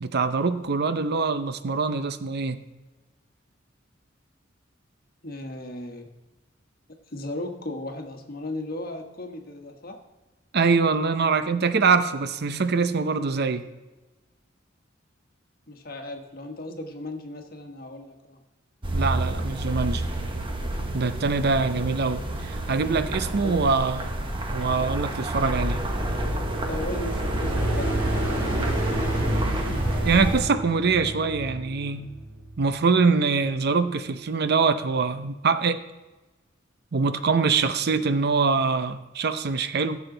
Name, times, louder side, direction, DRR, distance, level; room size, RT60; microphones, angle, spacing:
voice 1, 0.0-2.6 10.5-13.7 18.9-20.1 20.9-24.1 24.5-25.8 30.0-32.1 32.6-35.8 36.9-40.0, right 4 dB, 55° right, 11 dB, 0.6 m, -24 dB
voice 2, 5.2-6.1 7.1-10.0 15.7-18.4 23.4-23.7 26.7-28.0 28.3-28.8, left 1 dB, 50° left, 4 dB, 1.4 m, -36 dB
Small planes airport, 18.8-30.4, right 1 dB, 25° right, 1.2 m, -29 dB
sound 1, 26.4-33.0, right 1 dB, 85° right, 3.1 m, -31 dB
15.5 x 7.1 x 3.9 m, 1.1 s
head